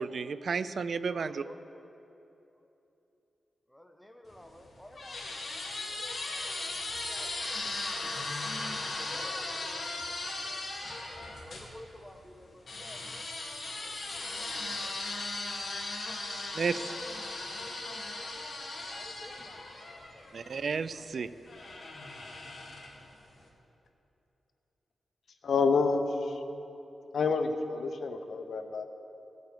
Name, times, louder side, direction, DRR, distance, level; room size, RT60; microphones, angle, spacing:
voice 1, 0.0-1.4 16.5-16.8 20.3-21.3, right 5 dB, 60° right, 14 dB, 0.4 m, -32 dB
voice 2, 1.1-1.9 3.7-5.3 5.9-7.8 8.2-8.7 9.1-13.2 13.8-15.0 16.7-18.3 19.0-19.6 20.1-20.2 20.6-21.1, left 1 dB, 5° left, 4 dB, 0.6 m, -53 dB
sound 1, 4.3-11.7 12.7-20.6 21.5-23.1, left 2 dB, 50° left, 1.9 m, -38 dB
voice 3, 25.4-26.4 27.1-28.8, left 4 dB, 70° left, 7 dB, 0.7 m, -28 dB
15.5 x 8.1 x 5.0 m, 2.9 s
wide cardioid pair, 110°, 0 cm